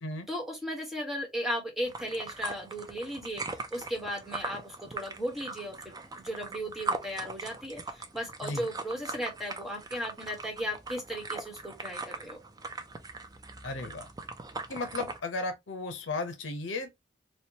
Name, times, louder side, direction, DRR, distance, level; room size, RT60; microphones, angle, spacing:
voice 1, 0.3-12.4, equal, ahead, 1.1 m, -36 dB
sound 1, 1.8-15.2, right 3 dB, 20° right, 0.4 m, -40 dB
voice 2, 13.6-14.1 14.7-17.0, left 3 dB, 85° left, 0.7 m, -35 dB
4.2 x 2.2 x 2.8 m
head